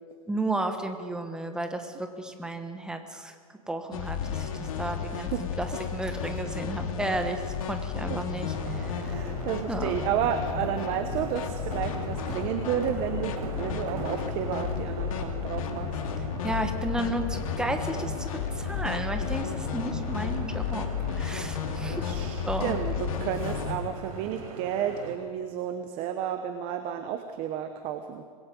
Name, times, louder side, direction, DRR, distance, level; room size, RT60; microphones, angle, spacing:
voice 1, 0.3-3.3 3.7-9.3 9.7-9.9 16.4-20.9 21.1-22.1 22.4-22.7, right 2 dB, 5° right, 6 dB, 1.4 m, -33 dB
sound 1, 3.9-23.7, left 7 dB, 60° left, 2.7 m, -33 dB
voice 2, 5.1-5.4 8.1-8.2 9.0-16.0 21.9-28.2, right 9 dB, 30° right, 8 dB, 1.0 m, -32 dB
sound 2, 8.4-25.1, right 4 dB, 75° right, 4.3 m, -42 dB
25.5 x 21.0 x 5.4 m, 2.1 s
supercardioid pair, 165°, 19 cm